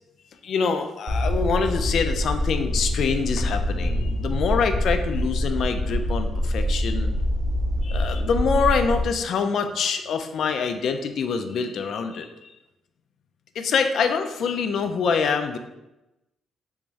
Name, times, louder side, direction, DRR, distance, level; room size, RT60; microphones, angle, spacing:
voice 1, 0.4-7.1 7.8-12.5 13.6-15.6, left 5 dB, 65° left, 7 dB, 0.3 m, -25 dB
sound 1, 1.1-9.1, equal, 40° right, 0.5 m, -25 dB
3.4 x 2.5 x 3.1 m, 0.95 s
cardioid pair, 90°, 0 cm